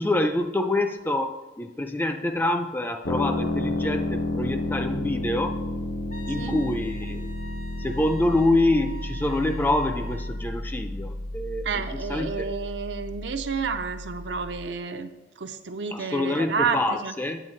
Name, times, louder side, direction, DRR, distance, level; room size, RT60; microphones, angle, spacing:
voice 1, 0.0-5.6 6.3-7.3 7.8-12.5 15.9-17.4, left 2 dB, 10° left, 6 dB, 0.4 m, -26 dB
sound 1, 3.0-14.7, left 1 dB, 90° left, 0.8 m, -31 dB
Wind instrument woodwind instrument, 6.1-10.4, right 1 dB, 40° left, 0.7 m, -44 dB
voice 2, 11.6-17.1, right 5 dB, 75° right, 8 dB, 0.6 m, -30 dB
9.0 x 8.0 x 3.2 m, 1.1 s
head